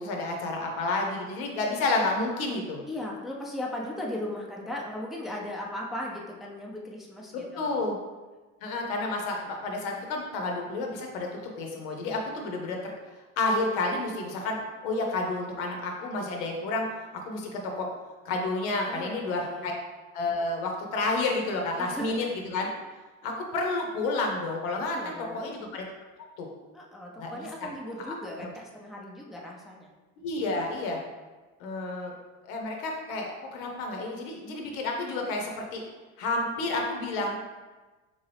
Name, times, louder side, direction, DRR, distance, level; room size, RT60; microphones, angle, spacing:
voice 1, 0.0-2.8 7.3-8.0 8.6-12.9 13.4-16.9 17.3-17.9 18.2-19.7 20.1-22.7 23.2-25.0 25.3-25.8 26.4-26.5 27.2-27.7 28.0-28.5 30.2-31.0 31.6-32.1 32.4-35.8 36.2-37.4, left 2 dB, 80° left, 1 dB, 0.8 m, -30 dB
voice 2, 2.9-7.8 18.9-19.7 21.8-22.2 24.9-25.5 26.7-29.9, left 1 dB, ahead, -2 dB, 0.5 m, -37 dB
3.7 x 2.7 x 3.3 m, 1.2 s
hypercardioid pair, 80°, 41 cm